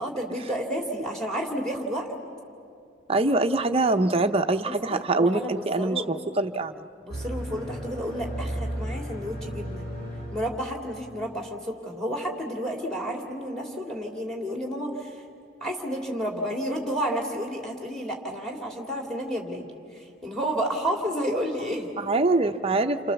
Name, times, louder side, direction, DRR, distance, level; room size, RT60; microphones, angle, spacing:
voice 1, 0.0-2.1 4.6-6.1 7.0-9.8 10.3-15.2 15.6-19.6 19.9-21.9, equal, 5° left, 1 dB, 2.8 m, -31 dB
voice 2, 3.1-6.7 22.0-23.1, right 2 dB, 30° right, 6 dB, 0.8 m, -24 dB
sound 1, 7.1-11.2, equal, 45° left, 3.0 m, -34 dB
29.0 x 27.0 x 7.1 m, 2.4 s
head